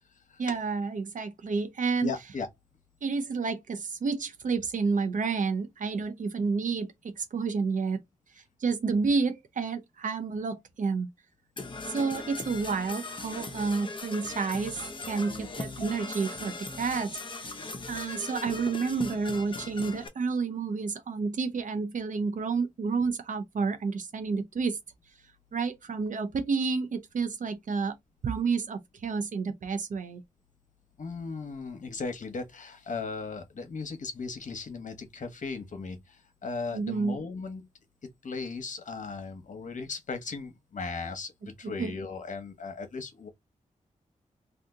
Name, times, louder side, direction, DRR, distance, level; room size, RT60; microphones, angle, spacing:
voice 1, 0.4-2.1 3.0-8.0 8.6-11.1 11.9-17.6 17.9-24.8 25.5-27.9 28.2-30.2 36.7-37.2 41.6-41.9, right 4 dB, 70° right, 0.6 m, -30 dB
voice 2, 2.0-2.5 31.0-37.7 38.2-43.3, left 4 dB, 70° left, 1.0 m, -37 dB
Percussion / Brass instrument, 11.6-20.1, left 3 dB, 35° left, 0.8 m, -39 dB
2.7 x 2.4 x 3.6 m
cardioid pair, 70°, 14 cm